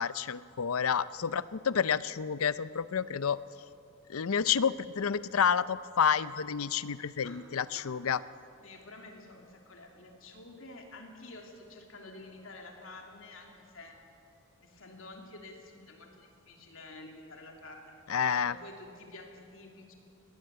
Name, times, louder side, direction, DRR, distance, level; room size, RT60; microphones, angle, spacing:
voice 1, 0.0-3.4 4.1-8.2 18.1-18.6, left 7 dB, 90° left, 16 dB, 0.6 m, -29 dB
voice 2, 7.7-8.2 8.6-14.0 14.6-19.9, left 2 dB, 70° left, 2 dB, 3.0 m, -50 dB
20.5 x 18.5 x 8.1 m, 2.6 s
head